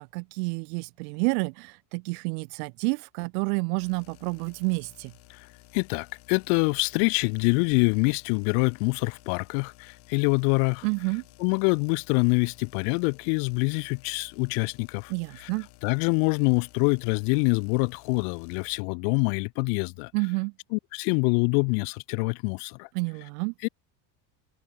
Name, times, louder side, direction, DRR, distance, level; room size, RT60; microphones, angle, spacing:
voice 1, 0.0-5.1 10.8-11.2 15.1-15.7 20.1-20.5 22.9-23.5, right 32 dB, 90° right, 1.1 m, -29 dB
sound 1, 3.8-18.8, left 19 dB, 60° left, 2.5 m, -55 dB
voice 2, 5.7-10.8 11.4-15.5 15.8-20.1 20.7-22.9 23.6-23.7, left 40 dB or more, 80° left, 0.7 m, -25 dB
cardioid pair, 135°, 46 cm